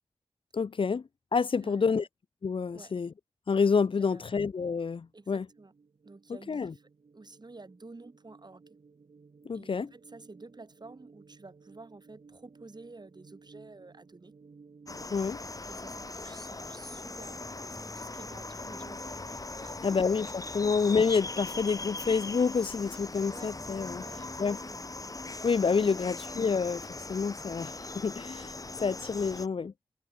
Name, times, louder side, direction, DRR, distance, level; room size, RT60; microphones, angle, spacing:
voice 1, 0.5-2.1 2.4-3.1 3.5-5.5 6.5-6.7 9.5-9.9 15.1-15.4 19.8-24.0 24.4-24.6 25.4-28.5 28.8-29.7, left 5 dB, 60° left, 0.5 m, -28 dB
voice 2, 1.6-2.1 2.7-2.9 4.0-4.4 5.1-5.7 6.0-8.6 9.5-14.3 15.7-20.3 23.3-23.5 24.0-24.8 25.8-26.2, right 3 dB, 45° right, 7.8 m, -51 dB
sound 1, 4.9-15.1, right 4 dB, 70° right, 2.0 m, -57 dB
sound 2, 14.9-29.5, left 3 dB, 35° left, 1.3 m, -40 dB
sound 3, 17.2-24.6, left 1 dB, 15° left, 5.3 m, -55 dB
wide cardioid pair, 75°, 10 cm